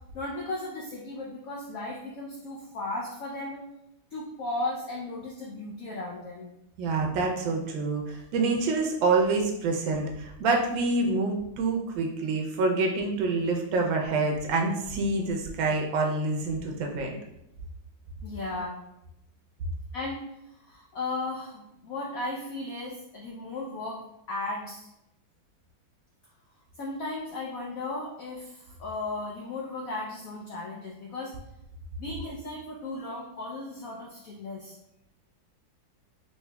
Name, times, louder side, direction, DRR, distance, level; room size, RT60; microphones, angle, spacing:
voice 1, 0.1-3.6 4.1-6.5 18.2-18.8 19.9-24.9 26.8-31.3 32.0-34.8, left 2 dB, 85° left, -2 dB, 0.7 m, -36 dB
voice 2, 6.8-17.2, right 3 dB, 85° right, 1 dB, 1.4 m, -27 dB
4.7 x 2.7 x 2.2 m, 0.86 s
omnidirectional pair, 2.1 m